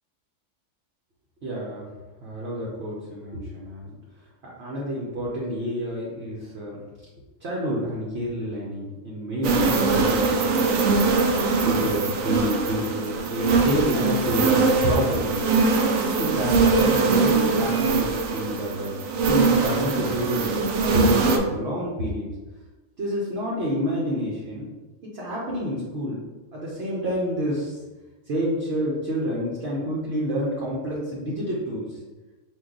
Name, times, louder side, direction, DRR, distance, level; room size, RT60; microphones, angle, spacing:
voice 1, 1.4-1.9 2.2-4.0 4.6-6.8 7.4-11.1 11.6-15.4 15.8-18.9 19.3-20.6 20.9-22.3 23.0-24.7 25.0-26.2 26.5-27.8 28.3-32.0, equal, 55° right, -5 dB, 1.0 m, -28 dB
sound 1, 9.4-21.4, right 4 dB, 75° right, 1.0 m, -22 dB
4.5 x 2.6 x 3.8 m, 1.2 s
omnidirectional pair, 1.4 m